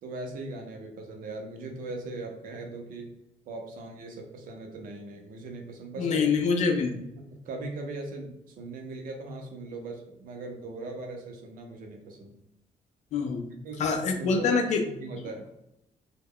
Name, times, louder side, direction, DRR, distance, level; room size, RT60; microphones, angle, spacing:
voice 1, 0.0-3.1 3.5-6.2 7.2-12.4 13.6-14.5 14.8-15.5, right 2 dB, 75° right, 2 dB, 0.6 m, -39 dB
voice 2, 6.0-7.1 13.1-14.8, left 5 dB, 55° left, 4 dB, 0.4 m, -26 dB
2.2 x 2.1 x 3.5 m, 0.84 s
cardioid pair, 175°, 14 cm